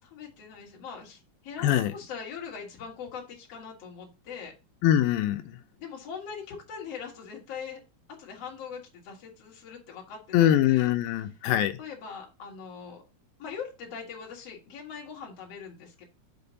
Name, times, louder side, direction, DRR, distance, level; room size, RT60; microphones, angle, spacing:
voice 1, 0.0-4.5 5.8-7.8 8.2-10.9 11.8-13.0 13.4-16.0, left 6 dB, 50° left, 2.6 m, -41 dB
voice 2, 1.6-1.9 4.8-5.6 10.3-11.8, left 11 dB, 90° left, 2.5 m, -23 dB
6.9 x 5.0 x 4.0 m
omnidirectional pair, 4.2 m